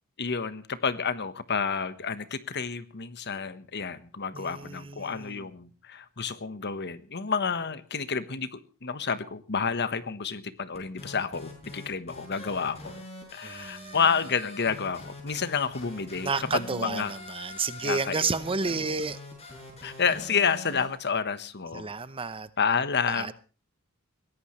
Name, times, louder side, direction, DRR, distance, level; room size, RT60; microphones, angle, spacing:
voice 1, 0.2-13.0 13.3-17.1 17.8-18.2 19.8-21.9 22.6-23.3, left 6 dB, 50° left, 13 dB, 1.2 m, -30 dB
voice 2, 4.3-5.5 13.4-14.0 16.2-19.2 21.7-22.5 23.1-23.3, right 4 dB, 25° right, 14 dB, 0.8 m, -31 dB
sound 1, 10.7-20.9, left 2 dB, 30° left, 7.6 m, -44 dB
22.0 x 17.5 x 3.2 m, 0.36 s
head